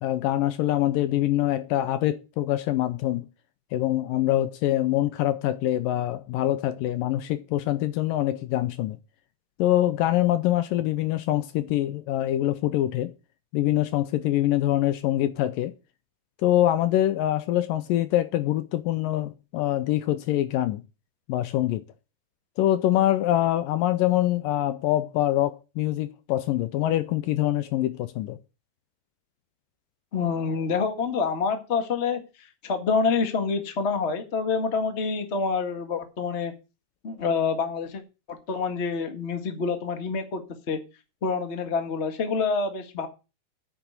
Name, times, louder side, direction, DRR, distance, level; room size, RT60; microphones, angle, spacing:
voice 1, 0.0-3.3 3.7-9.0 9.6-13.1 13.5-15.7 16.4-20.8 21.3-21.8 22.6-28.4, left 13 dB, 75° left, 2.1 m, -24 dB
voice 2, 30.1-36.5 37.0-38.0 38.3-40.8 41.2-43.1, left 5 dB, 60° left, 0.7 m, -27 dB
9.2 x 6.1 x 8.2 m
omnidirectional pair, 4.5 m